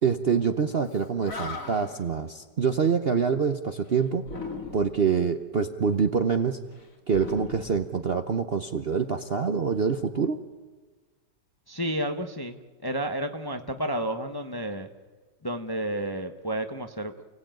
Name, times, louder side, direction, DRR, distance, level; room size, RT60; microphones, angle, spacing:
voice 1, 0.0-4.2 4.7-6.6 7.1-10.4, right 6 dB, 45° right, 7 dB, 0.8 m, -25 dB
Animal, 0.9-1.0 1.2-2.1 4.2-5.1 7.1-8.4, left 3 dB, 50° left, 2.8 m, -38 dB
voice 2, 11.7-12.6 12.8-14.9 15.4-17.3, right 1 dB, 15° left, 6 dB, 0.8 m, -31 dB
29.5 x 17.5 x 9.2 m, 1.3 s
omnidirectional pair, 1.9 m